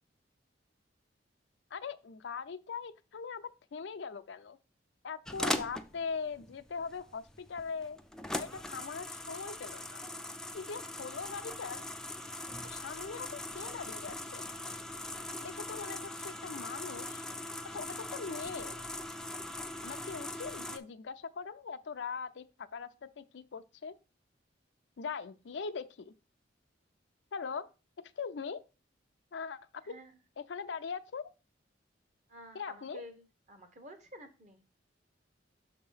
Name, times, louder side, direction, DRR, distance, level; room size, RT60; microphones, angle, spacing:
voice 1, 1.7-4.6 5.0-8.0 8.3-10.0 10.5-11.8 12.6-14.5 15.4-17.2 17.7-18.8 19.8-23.9 25.0-26.1 27.3-27.7 28.2-28.6 29.3-29.6 29.9-30.0 30.4-31.3 32.5-33.0, left 5 dB, 70° left, 0.5 m, -41 dB
sound 1, 5.3-20.8, left 1 dB, 5° left, 0.4 m, -41 dB
voice 2, 29.8-30.2 32.3-34.6, equal, 40° right, 1.1 m, -51 dB
6.6 x 2.9 x 5.5 m
head